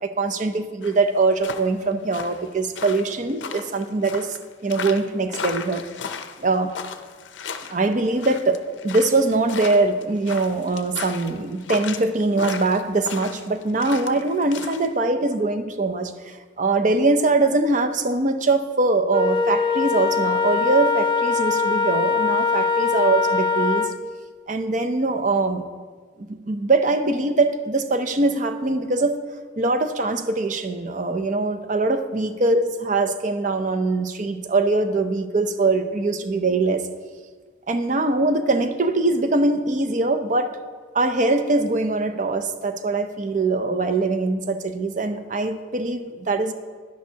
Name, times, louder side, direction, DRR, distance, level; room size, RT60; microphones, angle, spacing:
voice 1, 0.0-4.4 4.6-5.8 6.4-6.7 7.7-23.9 24.5-25.6 26.2-29.2 29.6-36.9 37.7-40.6 40.9-46.5, right 3 dB, 40° right, 8 dB, 0.6 m, -22 dB
sound 1, 0.8-14.9, left 6 dB, 75° left, 0.5 m, -35 dB
Wind instrument woodwind instrument, 19.1-24.0, left 5 dB, 25° left, 0.4 m, -22 dB
10.5 x 10.5 x 2.8 m, 1.5 s
head